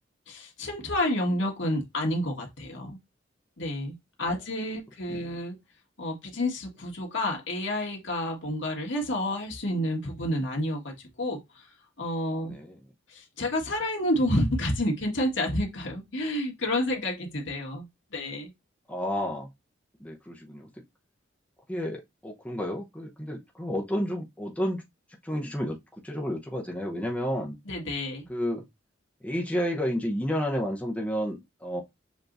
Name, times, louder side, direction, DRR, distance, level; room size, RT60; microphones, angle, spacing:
voice 1, 0.3-3.0 3.6-5.6 6.0-11.7 12.0-12.5 13.1-17.9 18.1-18.5 27.7-28.3, left 1 dB, 75° left, 1.6 m, -29 dB
voice 2, 12.5-12.8 18.9-19.5 20.0-20.7 21.7-24.8 25.2-27.6 28.3-28.7 29.2-31.8, equal, 5° left, 0.8 m, -31 dB
6.9 x 3.0 x 2.6 m
head